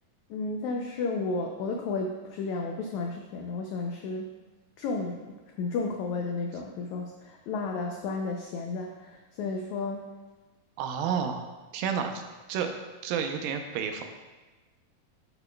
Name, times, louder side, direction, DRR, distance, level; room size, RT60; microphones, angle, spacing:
voice 1, 0.3-4.3 4.8-10.1, left 3 dB, 90° left, 2 dB, 1.6 m, -33 dB
voice 2, 10.8-11.5 11.7-12.2 12.5-12.7 13.0-14.0, right 7 dB, 85° right, 5 dB, 2.5 m, -30 dB
10.5 x 7.0 x 2.2 m, 1.2 s
omnidirectional pair, 4.0 m